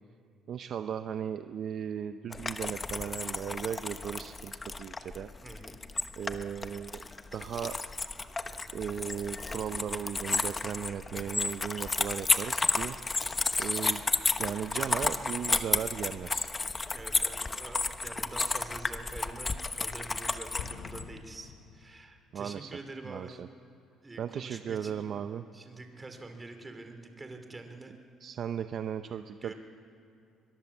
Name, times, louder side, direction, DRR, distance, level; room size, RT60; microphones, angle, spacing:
voice 1, 0.5-5.3 6.2-7.0 7.3-7.8 8.7-13.0 13.6-14.0 14.4-16.5 22.3-22.7 23.1-23.5 24.2-25.4 28.2-29.5, right 8 dB, 55° right, 9 dB, 0.7 m, -36 dB
sound 1, 2.3-21.0, left 3 dB, 20° left, 1.0 m, -32 dB
voice 2, 5.4-5.8 16.9-23.4 24.0-25.0 25.5-27.9 29.4-29.5, right 2 dB, 20° right, 6 dB, 2.9 m, -46 dB
Explosion, 20.6-22.4, left 8 dB, 80° left, 1.3 m, -46 dB
23.0 x 21.5 x 7.2 m, 2.6 s
cardioid pair, 100°, 0 cm